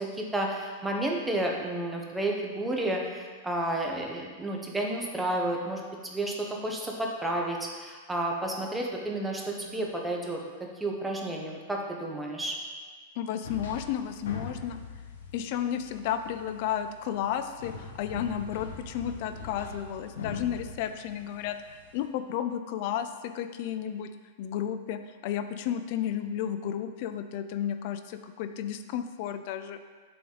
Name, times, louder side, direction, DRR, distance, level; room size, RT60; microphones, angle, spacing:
voice 1, 0.0-10.4 10.8-12.6, right 1 dB, 5° right, -1 dB, 0.9 m, -31 dB
voice 2, 13.2-14.8 15.3-21.6 21.9-24.1 24.4-29.8, left 9 dB, 55° left, 9 dB, 0.4 m, -32 dB
sound 1, 13.4-22.1, left 4 dB, 85° left, 0.9 m, -43 dB
7.7 x 3.4 x 3.9 m, 1.5 s
hypercardioid pair, 125°, 0 cm